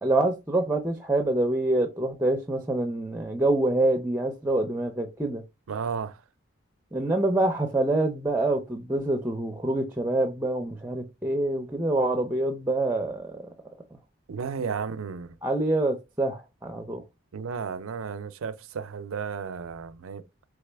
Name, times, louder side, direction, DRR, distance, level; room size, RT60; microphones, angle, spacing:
voice 1, 0.0-5.4 6.9-13.4 15.4-17.0, right 2 dB, 10° right, 0.5 m, -26 dB
voice 2, 5.7-6.2 14.3-15.3 17.3-20.2, right 6 dB, 90° right, 0.5 m, -33 dB
4.0 x 3.6 x 3.3 m
head